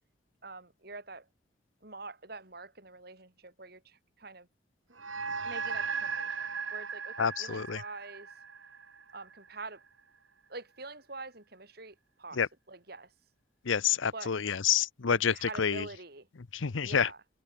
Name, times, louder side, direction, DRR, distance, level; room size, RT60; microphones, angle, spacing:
voice 1, 0.4-1.3 1.8-4.5 4.9-5.1 5.4-8.3 9.1-9.8 10.5-12.4 12.7-13.1 14.1-14.3 15.1-16.3 16.8-17.2, right 3 dB, 55° right, 4.2 m, -45 dB
sound 1, 5.0-9.6, right 5 dB, 90° right, 4.5 m, -37 dB
voice 2, 7.2-7.8 12.3-12.5 13.6-15.9 16.5-17.1, left 7 dB, 85° left, 0.7 m, -28 dB
head